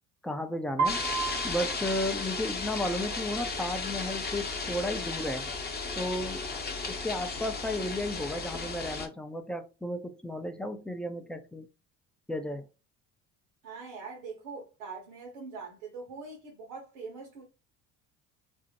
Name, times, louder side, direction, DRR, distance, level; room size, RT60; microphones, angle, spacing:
voice 1, 0.2-1.0 1.4-5.5 6.0-6.5 6.9-11.7 12.3-12.7, left 1 dB, 5° left, 0.3 m, -33 dB
sound 1, 0.8-9.1, left 4 dB, 25° left, 0.7 m, -35 dB
Piano, 0.8-2.8, right 5 dB, 45° right, 0.5 m, -34 dB
voice 2, 13.6-17.4, right 4 dB, 75° right, 1.0 m, -43 dB
2.6 x 2.1 x 2.8 m
hypercardioid pair, 65°, 40 cm